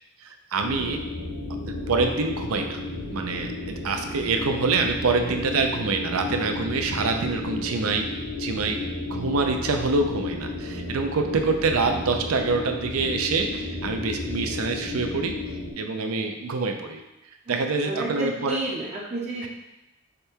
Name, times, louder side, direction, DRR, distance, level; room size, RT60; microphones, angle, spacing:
voice 1, 0.2-1.0 1.7-2.8 3.1-8.1 8.4-8.8 9.1-15.3 15.8-17.0 17.5-18.6, right 4 dB, 70° right, 5 dB, 0.5 m, -26 dB
sound 1, 0.6-15.7, left 2 dB, 60° left, 1.0 m, -33 dB
voice 2, 17.5-19.5, right 2 dB, 30° right, -5 dB, 0.6 m, -31 dB
5.0 x 2.3 x 4.4 m, 0.97 s
head